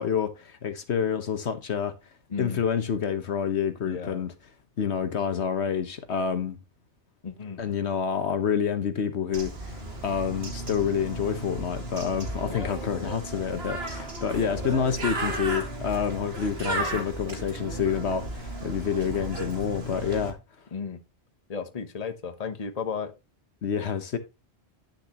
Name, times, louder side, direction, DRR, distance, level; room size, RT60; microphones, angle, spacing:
voice 1, 0.0-1.9 2.4-4.3 4.8-6.6 7.6-20.4 23.6-24.2, left 7 dB, 70° left, 1.3 m, -28 dB
voice 2, 2.3-2.6 3.8-4.2 7.2-7.6 12.4-13.1 14.3-15.1 16.7-16.9 20.7-21.0 21.5-23.1, left 5 dB, 35° left, 1.1 m, -35 dB
Bird, 9.3-20.3, right 2 dB, 60° right, 2.2 m, -34 dB
10.0 x 6.6 x 2.9 m
omnidirectional pair, 1.2 m